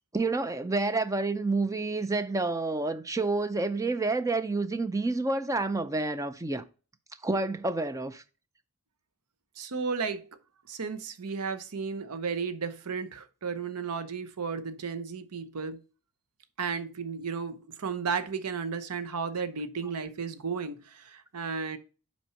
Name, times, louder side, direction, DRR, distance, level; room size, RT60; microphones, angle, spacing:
voice 1, 0.1-6.6 7.2-8.2, right 3 dB, 15° right, 0.4 m, -29 dB
voice 2, 9.6-10.3 10.7-15.8 16.6-21.8, right 5 dB, 90° right, 0.8 m, -34 dB
5.7 x 4.5 x 5.6 m
head